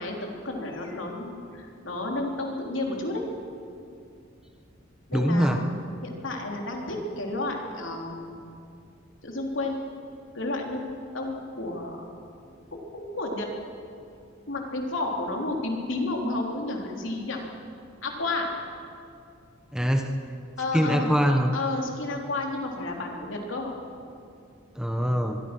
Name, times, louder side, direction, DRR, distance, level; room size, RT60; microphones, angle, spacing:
voice 1, 0.0-3.2 5.1-8.5 9.2-9.8 10.3-10.9 11.1-12.0 12.7-13.5 14.5-17.4 18.0-18.5 20.6-21.1 21.5-23.7, left 2 dB, 70° left, 1 dB, 3.7 m, -31 dB
voice 2, 5.1-5.6 19.7-20.1 20.7-21.5 24.8-25.4, equal, 5° right, 4 dB, 1.2 m, -23 dB
24.0 x 23.0 x 6.2 m, 2.5 s
head